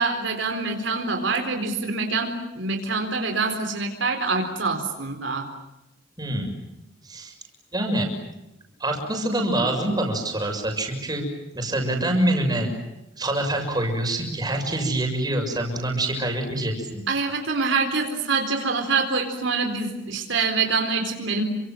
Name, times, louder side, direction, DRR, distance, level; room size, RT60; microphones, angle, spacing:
voice 1, 0.0-5.5 17.1-21.4, right 4 dB, 70° right, 4 dB, 4.2 m, -25 dB
voice 2, 6.2-6.5 7.0-7.3 7.7-8.1 8.8-11.3 11.5-12.7 13.2-17.0, right 1 dB, 20° right, 3 dB, 6.6 m, -25 dB
30.0 x 25.5 x 7.8 m, 0.91 s
head